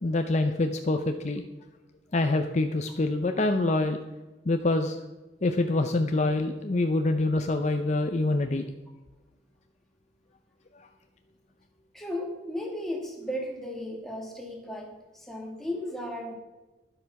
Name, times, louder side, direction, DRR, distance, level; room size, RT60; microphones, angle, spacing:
voice 1, 0.0-1.4 2.1-4.0 4.5-5.0 5.4-8.6, left 2 dB, 40° left, 6 dB, 0.6 m, -25 dB
voice 2, 11.9-16.3, left 1 dB, ahead, 0 dB, 2.0 m, -35 dB
11.5 x 8.0 x 5.8 m, 1.1 s
head